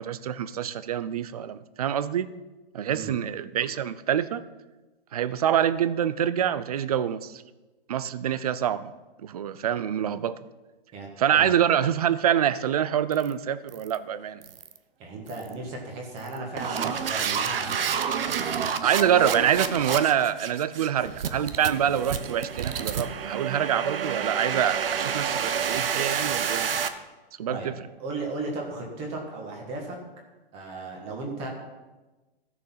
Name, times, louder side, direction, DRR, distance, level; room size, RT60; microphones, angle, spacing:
voice 1, 0.0-2.3 2.7-4.4 5.1-7.4 7.9-8.9 9.2-10.4 11.2-14.4 18.8-26.9 27.4-27.7, right 9 dB, 40° right, 15 dB, 0.5 m, -26 dB
voice 2, 10.9-11.5 15.0-18.8 27.5-27.7 28.0-30.0 30.5-31.5, right 3 dB, 20° right, 0 dB, 1.6 m, -36 dB
sound 1, 13.1-13.3 13.7-14.0 14.4-14.8 15.3-15.5 16.2-26.9, right 7 dB, 65° right, 1.0 m, -29 dB
14.5 x 6.8 x 5.7 m, 1.2 s
hypercardioid pair, 160°, 31 cm